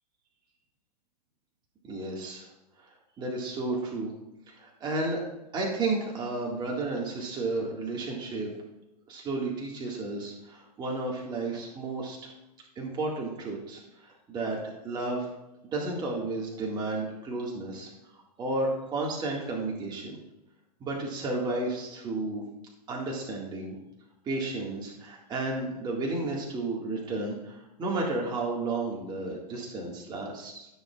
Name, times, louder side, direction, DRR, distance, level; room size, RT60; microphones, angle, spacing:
voice 1, 1.9-2.4 3.2-4.1 4.5-5.2 5.5-8.5 9.1-12.3 12.8-15.3 15.6-17.9 18.4-20.2 20.8-22.4 22.9-23.8 24.3-30.7, right 2 dB, 20° right, -2 dB, 1.9 m, -32 dB
13.5 x 6.5 x 2.4 m, 0.91 s
hypercardioid pair, 125°, 21 cm